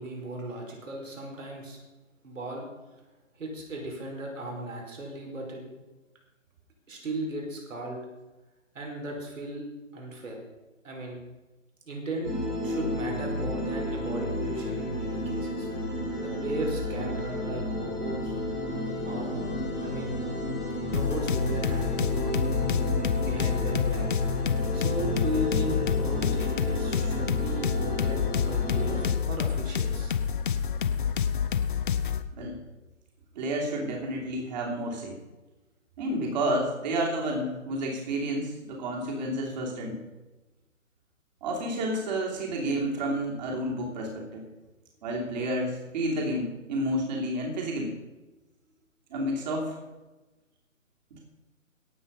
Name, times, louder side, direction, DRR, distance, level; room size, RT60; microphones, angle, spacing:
voice 1, 0.0-1.8 2.2-2.7 3.4-5.6 6.9-8.0 8.7-9.6 9.9-10.4 10.8-11.2 11.8-12.3 12.6-15.7 16.1-18.4 19.0-19.3 19.8-20.2 20.9-22.4 23.2-24.1 24.7-30.2, right 1 dB, 70° right, 0 dB, 5.1 m, -36 dB
sound 1, 12.2-29.1, left 1 dB, 5° right, 0.6 m, -32 dB
sound 2, 20.9-32.2, left 7 dB, 40° left, 0.8 m, -28 dB
voice 2, 33.3-35.2 36.0-40.0 41.4-44.4 45.0-47.9 49.1-49.8 51.1-51.2, right 1 dB, 30° right, -1 dB, 2.9 m, -30 dB
17.5 x 7.7 x 5.3 m, 1.1 s
figure-of-eight pair, 150°, 40 cm